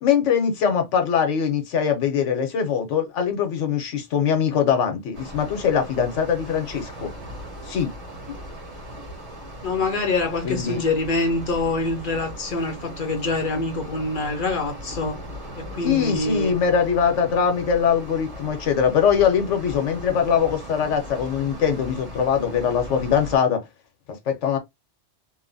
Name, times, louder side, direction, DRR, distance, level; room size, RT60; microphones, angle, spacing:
voice 1, 0.0-7.1 7.6-7.9 10.4-10.8 15.8-23.6 24.1-24.6, left 7 dB, 90° left, 1.1 m, -22 dB
sound 1, 5.1-23.4, equal, 30° right, 1.4 m, -38 dB
voice 2, 9.6-15.2 15.6-16.5, left 3 dB, 55° left, 0.7 m, -25 dB
2.8 x 2.2 x 2.6 m
omnidirectional pair, 1.2 m